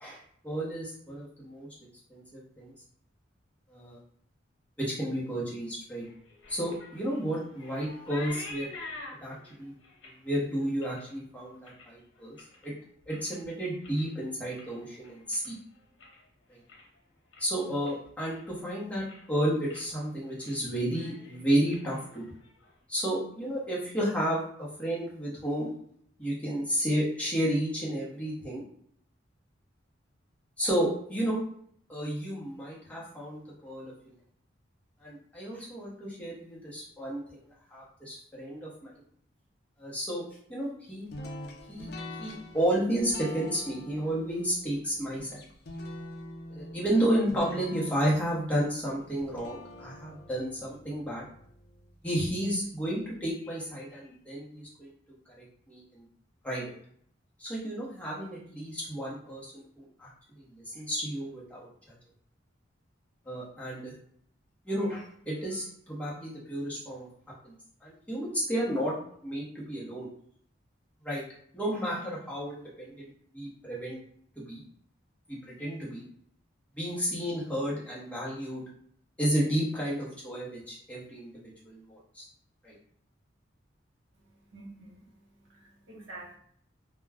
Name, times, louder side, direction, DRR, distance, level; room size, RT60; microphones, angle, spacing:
voice 1, 0.4-1.7 2.1-2.7 3.7-4.0 4.8-6.0 6.5-8.7 9.2-9.7 10.2-12.4 12.6-12.7 13.1-15.6 16.5-16.6 17.4-22.2 22.9-25.7 26.2-28.6 30.6-31.4 31.9-34.1 35.0-37.2 37.7-38.9 39.8-40.2 40.5-41.1 41.7-41.9 42.2-45.4 46.5-51.3 52.0-54.9 55.4-56.0 56.4-56.7 57.4-60.1 60.4-61.9 63.3-63.9 64.6-67.1 67.4-67.5 67.8-68.9 69.2-70.1 71.0-71.2 71.5-74.0 74.5-74.6 75.3-76.0 76.8-78.6 79.2-82.3 82.6-82.7, right 1 dB, 5° left, -6 dB, 0.8 m, -32 dB
sound 1, 6.0-12.7 13.0-13.5 13.8-16.3 16.6-17.0 17.3-17.4 17.9-18.7 18.9-19.3 19.7-19.9 20.2-20.6 20.8-22.7, left 2 dB, 85° left, 0.8 m, -48 dB
sound 2, 41.1-52.1, left 1 dB, 55° left, 0.4 m, -45 dB
voice 2, 84.1-86.4, right 2 dB, 75° right, -2 dB, 0.9 m, -49 dB
2.3 x 2.2 x 3.4 m, 0.63 s
head